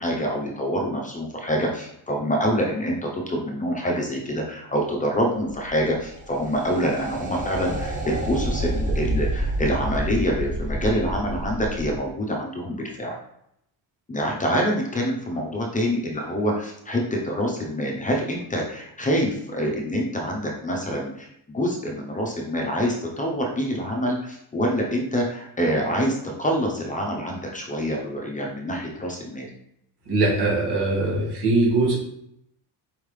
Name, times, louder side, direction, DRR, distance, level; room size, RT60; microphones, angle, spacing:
voice 1, 0.0-13.2 14.1-29.5, equal, 20° left, -1 dB, 0.7 m, -26 dB
sound 1, 5.4-12.0, right 1 dB, 20° right, 0.7 m, -29 dB
voice 2, 30.1-32.0, right 2 dB, 70° right, -3 dB, 1.8 m, -21 dB
4.6 x 3.5 x 3.2 m, 0.76 s
cardioid pair, 150°, 41 cm